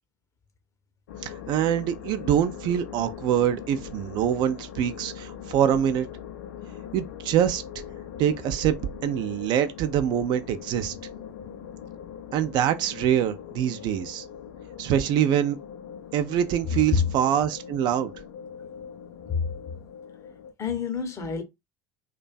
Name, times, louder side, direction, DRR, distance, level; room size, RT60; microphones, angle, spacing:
sound 1, 1.1-20.5, left 8 dB, 70° left, 0.4 m, -41 dB
voice 1, 1.2-6.1 6.9-7.6 8.2-8.8 9.0-11.0 12.3-14.3 14.8-15.6 16.1-18.1, right 10 dB, 50° right, 0.3 m, -24 dB
voice 2, 16.7-17.1 19.3-19.5 20.6-21.4, left 5 dB, 30° left, 0.7 m, -26 dB
2.5 x 2.2 x 2.3 m
figure-of-eight pair, 65°, 10 cm